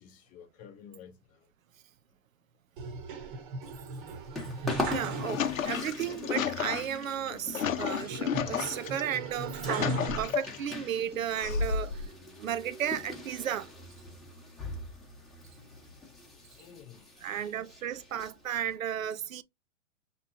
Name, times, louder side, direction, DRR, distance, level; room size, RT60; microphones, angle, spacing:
voice 1, 0.0-1.5 2.8-2.9 3.4-3.7 15.2-15.8 16.3-17.6, left 8 dB, 20° left, 0.6 m, -54 dB
sound 1, 2.8-5.8 6.1-6.2 8.0-10.7 11.3-12.1, right 3 dB, 40° right, 0.9 m, -38 dB
sound 2, 3.6-18.8, left 2 dB, ahead, 0.9 m, -42 dB
voice 2, 4.6-11.9 12.4-13.7 17.2-19.4, right 9 dB, 85° right, 0.5 m, -34 dB
sound 3, 5.1-9.0 9.5-10.7 11.4-12.1, left 7 dB, 85° left, 0.7 m, -32 dB
5.9 x 3.0 x 2.5 m
hypercardioid pair, 125°, 39 cm